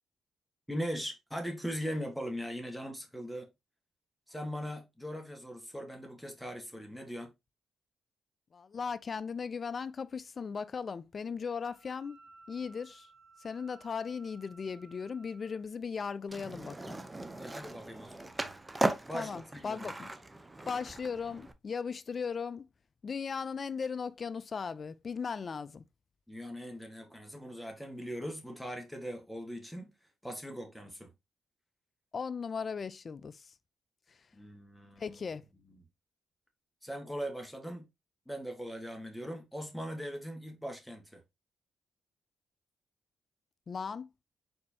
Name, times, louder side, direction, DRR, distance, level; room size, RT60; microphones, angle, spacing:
voice 1, 0.7-3.5 4.3-7.3 17.4-18.3 19.1-19.9 26.3-29.9 30.2-31.1 34.3-35.2 35.6-35.8 36.8-37.9 38.2-41.2, equal, ahead, 1.5 m, -40 dB
voice 2, 8.5-12.2 12.5-13.1 13.4-17.0 19.1-20.1 20.7-22.7 23.0-25.8 32.1-33.5 34.1-34.2 35.0-35.4 43.7-44.1, left 5 dB, 45° left, 0.4 m, -37 dB
Wind instrument woodwind instrument, 11.6-15.6, right 3 dB, 65° right, 3.0 m, -58 dB
Skateboard, 16.3-21.5, right 2 dB, 20° right, 0.6 m, -37 dB
4.4 x 4.2 x 2.8 m
cardioid pair, 80°, 0 cm